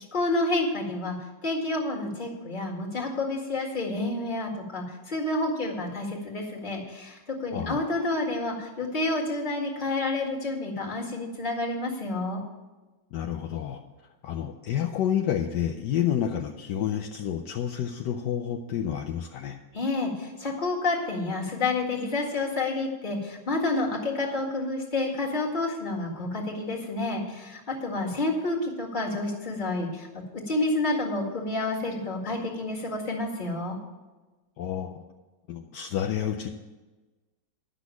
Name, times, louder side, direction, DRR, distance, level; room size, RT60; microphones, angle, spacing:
voice 1, 0.1-1.2 1.4-12.4 19.7-30.1 30.5-33.8, left 2 dB, 25° left, -2 dB, 1.9 m, -29 dB
voice 2, 7.5-7.8 13.1-13.8 14.2-19.6 34.6-35.0 35.5-36.5, left 9 dB, 75° left, 4 dB, 1.3 m, -29 dB
11.0 x 6.2 x 8.2 m, 1.2 s
omnidirectional pair, 2.0 m